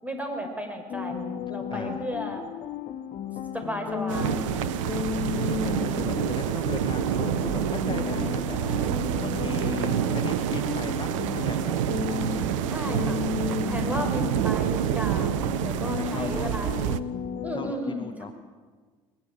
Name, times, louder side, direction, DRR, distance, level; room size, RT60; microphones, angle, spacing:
voice 1, 0.0-2.4 3.5-5.1 12.7-15.3 15.6-16.9 17.4-18.3, equal, 10° right, 5 dB, 6.1 m, -34 dB
sound 1, 0.9-17.7, left 8 dB, 45° left, 1.7 m, -34 dB
voice 2, 1.7-2.0 4.8-8.6 9.2-11.8 13.9-14.1 14.6-14.8 15.8-16.5 17.5-18.3, left 5 dB, 30° left, 7 dB, 1.8 m, -38 dB
sound 2, 4.1-17.0, right 11 dB, 75° right, 0.9 m, -27 dB
22.0 x 20.5 x 9.2 m, 1.5 s
figure-of-eight pair, 60°, 17 cm